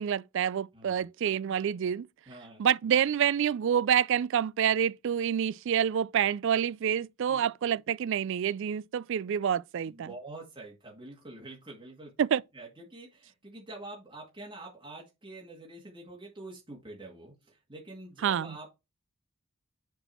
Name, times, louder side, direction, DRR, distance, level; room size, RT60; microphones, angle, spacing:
voice 1, 0.0-2.1 2.6-10.1 12.2-12.4 18.2-18.6, right 8 dB, 60° right, 0.3 m, -27 dB
voice 2, 2.3-2.6 7.3-7.5 9.9-12.1 12.5-18.7, right 2 dB, 25° right, 2.1 m, -46 dB
7.9 x 4.5 x 4.4 m
head